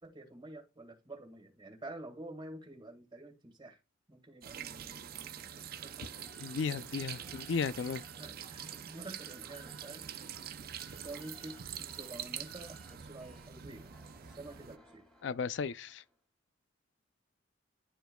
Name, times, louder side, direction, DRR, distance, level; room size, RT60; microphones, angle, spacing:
voice 1, 0.0-3.8 4.1-6.1 7.0-7.4 8.1-10.1 11.0-13.8 14.3-15.0, right 2 dB, 25° right, 1.8 m, -49 dB
sound 1, 4.4-14.8, right 9 dB, 50° right, 0.5 m, -45 dB
sound 2, 5.6-16.2, left 1 dB, ahead, 2.1 m, -62 dB
voice 2, 6.4-8.0 15.2-16.0, left 5 dB, 70° left, 0.4 m, -35 dB
11.0 x 4.5 x 2.2 m
head